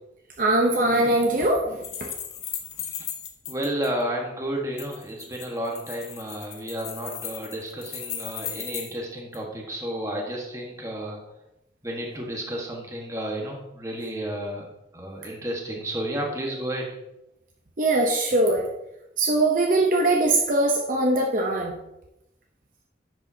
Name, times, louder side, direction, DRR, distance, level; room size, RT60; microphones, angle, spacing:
voice 1, 0.4-2.1 17.8-18.6 19.2-21.7, right 2 dB, 45° right, 0 dB, 0.8 m, -21 dB
sound 1, 1.8-3.9 4.8-9.0 9.3-9.4, left 9 dB, 55° left, 1.0 m, -36 dB
voice 2, 3.5-11.2 11.8-14.7 14.9-16.9, right 1 dB, 15° right, -1 dB, 1.4 m, -32 dB
10.0 x 6.8 x 2.8 m, 0.89 s
head